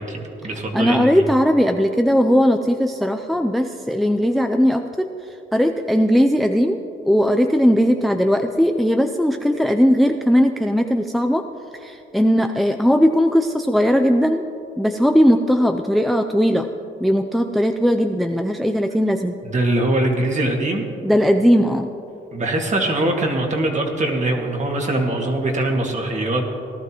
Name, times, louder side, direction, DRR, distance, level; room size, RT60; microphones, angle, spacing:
voice 1, 0.0-1.2 19.4-20.9 22.3-26.5, right 1 dB, 35° right, 1 dB, 2.0 m, -22 dB
voice 2, 0.7-5.1 5.5-11.4 11.8-14.4 14.8-16.7 17.0-19.4 21.0-21.9, equal, ahead, 6 dB, 0.4 m, -18 dB
18.0 x 12.0 x 3.0 m, 2.8 s
cardioid pair, 90°, 20 cm